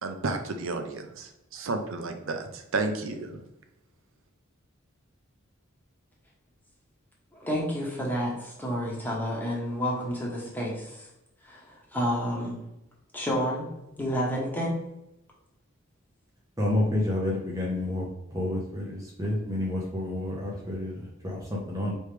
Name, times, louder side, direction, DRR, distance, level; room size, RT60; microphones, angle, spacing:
voice 1, 0.0-3.4, right 3 dB, 70° right, 6 dB, 0.6 m, -32 dB
voice 2, 7.3-11.0 11.4-12.5 13.1-13.7 14.0-14.7, equal, 10° left, -4 dB, 1.1 m, -30 dB
voice 3, 16.6-18.1 18.3-21.9, left 1 dB, 15° right, -3 dB, 0.7 m, -29 dB
4.8 x 3.1 x 3.3 m, 0.90 s
head